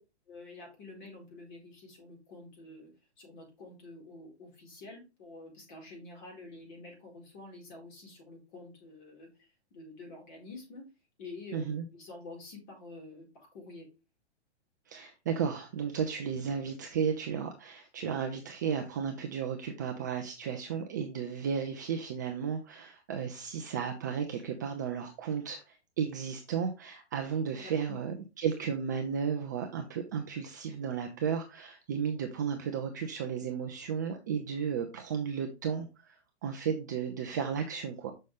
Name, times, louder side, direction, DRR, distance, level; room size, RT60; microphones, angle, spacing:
voice 1, 0.3-2.9 3.2-10.9 11.2-11.6 11.9-13.9 27.6-28.1, left 3 dB, 45° left, 0 dB, 4.4 m, -48 dB
voice 2, 11.5-11.8 14.9-38.1, right 7 dB, 20° right, 4 dB, 0.3 m, -34 dB
6.4 x 5.5 x 3.4 m, 0.28 s
hypercardioid pair, 150°, 34 cm